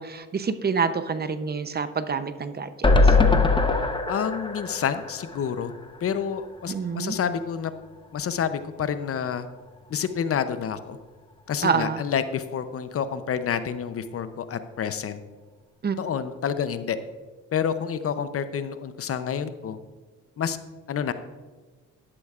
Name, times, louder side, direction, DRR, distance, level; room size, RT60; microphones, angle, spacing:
voice 1, 0.0-3.1 6.7-7.1 11.6-12.0 15.8-16.0, right 5 dB, 35° right, 11 dB, 0.7 m, -27 dB
sound 1, 2.8-6.1 6.4-6.5 6.8-6.9, left 3 dB, 15° left, 0.9 m, -21 dB
voice 2, 4.1-5.7 6.0-7.7 8.1-9.5 9.9-11.0 11.5-15.2 16.0-17.0 17.5-19.8 20.4-20.6 20.9-21.1, left 7 dB, 50° left, 11 dB, 0.7 m, -28 dB
11.5 x 11.0 x 2.4 m, 1.3 s
cardioid pair, 90°, 30 cm